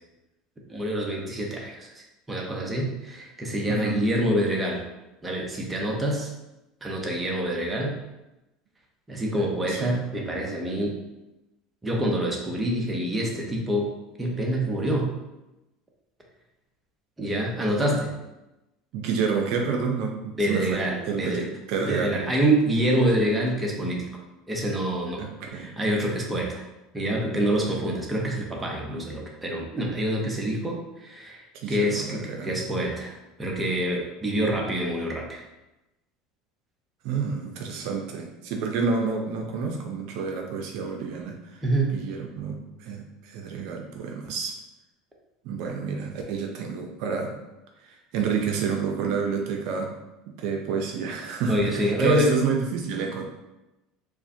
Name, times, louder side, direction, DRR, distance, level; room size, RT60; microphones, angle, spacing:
voice 1, 0.7-4.8 5.2-6.3 6.8-8.0 9.1-11.0 11.8-13.9 14.2-15.1 17.2-18.1 20.4-21.4 21.8-24.1 24.5-25.2 25.5-26.6 26.9-31.4 31.7-35.4 41.6-41.9 51.5-52.3, right 1 dB, 15° right, -1 dB, 0.8 m, -26 dB
voice 2, 3.7-4.0 9.7-9.9 18.9-22.2 25.2-25.7 31.5-32.5 37.0-41.6 41.9-44.6 45.4-47.3 47.8-49.9 50.3-53.2, right 5 dB, 70° right, 2 dB, 0.5 m, -29 dB
4.8 x 2.1 x 2.7 m, 0.97 s
supercardioid pair, 110°, 0 cm